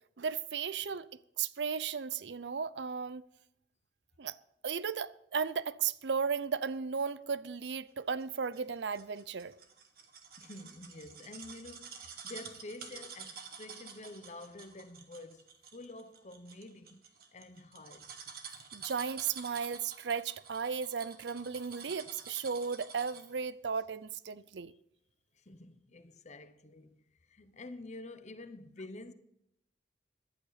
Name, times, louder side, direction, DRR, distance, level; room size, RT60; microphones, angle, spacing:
voice 1, 0.2-1.1 1.4-3.2 4.2-4.4 4.6-9.5 18.7-24.7, right 6 dB, 80° right, 0.6 m, -35 dB
sound 1, 8.2-23.4 23.8-23.9, right 6 dB, 55° right, 1.7 m, -49 dB
voice 2, 10.4-18.1 24.7-24.8 25.3-29.1, left 2 dB, 40° left, 0.9 m, -49 dB
15.0 x 11.5 x 4.1 m
head